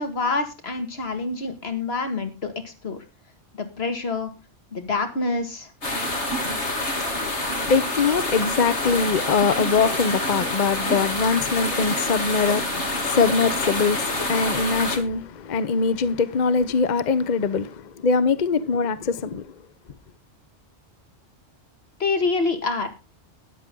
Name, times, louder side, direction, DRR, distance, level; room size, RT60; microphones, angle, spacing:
voice 1, 0.0-3.0 3.6-4.3 4.7-5.7 22.0-22.9, left 3 dB, 65° left, 2.2 m, -26 dB
sound 1, 5.8-15.0, left 1 dB, 85° left, 3.2 m, -27 dB
voice 2, 7.2-19.5, left 5 dB, 45° left, 0.9 m, -23 dB
13.0 x 10.5 x 3.7 m
omnidirectional pair, 1.2 m